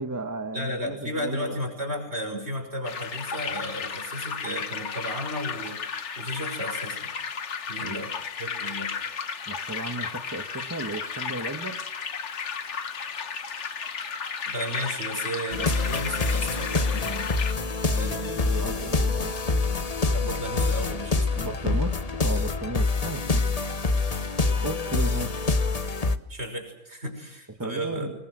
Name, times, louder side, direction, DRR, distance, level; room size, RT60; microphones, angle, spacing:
voice 1, 0.0-1.6 7.8-8.1 9.5-11.8 17.8-19.3 21.3-23.4 24.6-25.5 27.6-28.1, right 2 dB, 15° right, 6 dB, 1.2 m, -35 dB
voice 2, 0.5-5.8 6.2-7.1 7.7-8.1 8.4-8.9 14.5-17.3 18.0-18.4 20.1-21.6 26.3-28.1, equal, 55° right, 5 dB, 6.0 m, -34 dB
sound 1, 2.8-17.5, left 6 dB, 65° left, 1.5 m, -34 dB
sound 2, 15.5-26.2, left 3 dB, 35° left, 1.0 m, -26 dB
26.5 x 21.5 x 7.8 m, 0.81 s
omnidirectional pair, 1.3 m